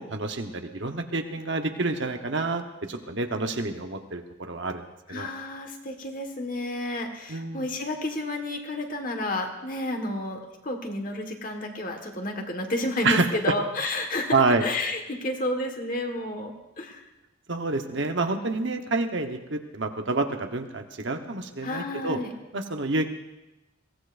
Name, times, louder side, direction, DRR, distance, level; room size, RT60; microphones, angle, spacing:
voice 1, 0.0-5.3 7.3-7.7 13.0-13.5 14.3-14.6 17.5-22.2 22.5-23.1, right 3 dB, 65° right, 5 dB, 1.1 m, -28 dB
voice 2, 5.1-17.0 21.6-22.3, left 1 dB, 45° left, 3 dB, 1.6 m, -31 dB
22.0 x 16.5 x 2.6 m, 0.96 s
head